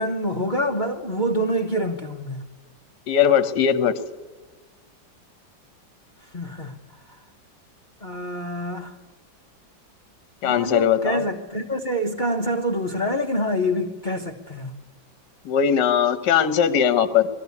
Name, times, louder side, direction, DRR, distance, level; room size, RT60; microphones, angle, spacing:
voice 1, 0.0-2.4 6.3-6.8 8.0-8.9 10.4-14.7, equal, 30° left, 1.1 m, -26 dB
voice 2, 3.1-4.0 10.4-11.2 15.4-17.3, left 8 dB, 65° left, 1.6 m, -19 dB
21.5 x 14.5 x 8.4 m
omnidirectional pair, 2.1 m